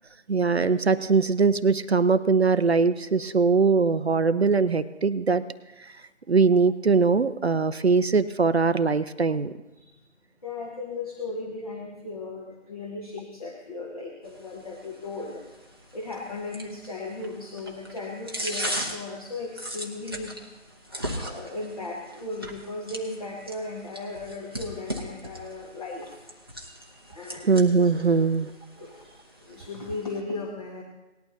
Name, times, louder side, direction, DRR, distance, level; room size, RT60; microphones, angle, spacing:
voice 1, 0.3-5.4 5.8-5.9 6.3-9.5 27.4-28.5, right 4 dB, 60° right, 13 dB, 0.5 m, -21 dB
voice 2, 9.7-10.0 10.4-15.5 15.9-20.4 21.2-26.3 26.6-28.4 28.7-30.8, left 3 dB, 30° left, -2 dB, 1.3 m, -37 dB
sound 1, 14.2-30.2, equal, 20° right, 0.7 m, -39 dB
18.5 x 11.5 x 2.8 m, 1.0 s
figure-of-eight pair, 160°, 37 cm